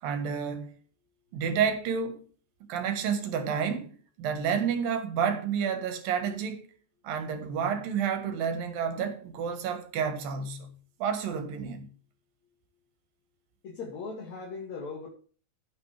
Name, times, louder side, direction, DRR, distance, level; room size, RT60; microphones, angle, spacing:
voice 1, 0.0-0.7 1.3-2.2 2.7-6.7 7.0-10.7 11.0-11.9, right 7 dB, 65° right, 3.1 m, -30 dB
voice 2, 13.6-15.1, left 4 dB, 45° left, 3.1 m, -38 dB
16.5 x 6.7 x 3.4 m
omnidirectional pair, 4.9 m